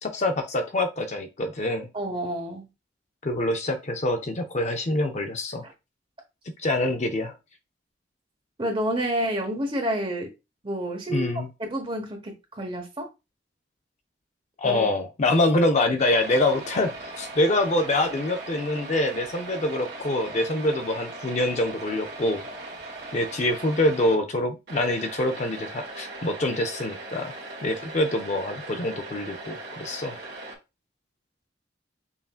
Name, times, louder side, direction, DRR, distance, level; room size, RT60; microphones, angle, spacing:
voice 1, 0.0-1.9 3.2-5.6 6.6-7.3 11.1-11.5 14.6-22.4 23.1-27.3 27.6-30.2, left 1 dB, 40° left, 0.5 m, -25 dB
voice 2, 1.9-2.7 5.6-5.7 8.6-10.3 10.6-13.1 14.6-14.9, right 1 dB, 30° right, 1.0 m, -29 dB
sound 1, 16.0-24.1 24.7-30.6, right 2 dB, 55° right, 1.4 m, -39 dB
5.6 x 2.6 x 2.4 m
head